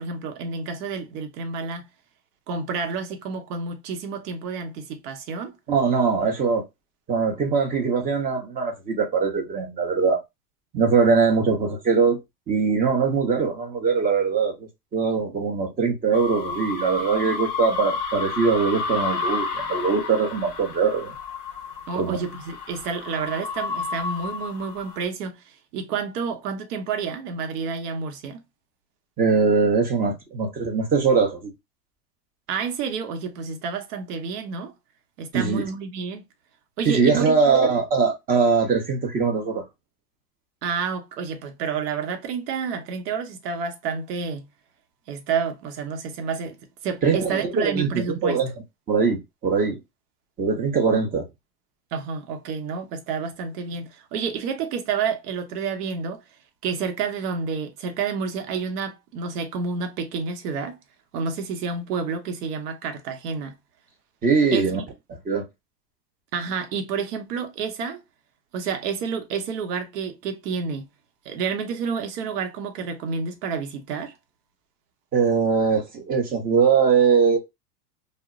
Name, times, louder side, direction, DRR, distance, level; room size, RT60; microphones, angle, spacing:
voice 1, 0.0-1.8 2.5-5.5 21.9-28.4 32.5-34.7 35.2-36.3 36.8-37.3 37.6-37.7 40.6-44.5 45.1-46.6 46.8-48.4 51.9-56.2 56.6-60.8 61.1-63.6 64.5-64.8 66.3-68.0 68.5-70.9 71.2-74.1, right 5 dB, 65° right, 0.9 m, -29 dB
voice 2, 5.7-6.6 7.1-10.2 10.7-12.2 12.5-21.1 21.9-22.2 29.2-31.5 35.3-35.6 36.9-39.6 47.0-48.5 48.9-49.8 50.4-51.3 64.2-64.8 65.2-65.5 75.1-77.4, right 5 dB, 20° right, 0.6 m, -21 dB
sound 1, 16.1-25.0, left 4 dB, 30° left, 0.6 m, -31 dB
2.1 x 2.0 x 3.4 m
hypercardioid pair, 115°, 50 cm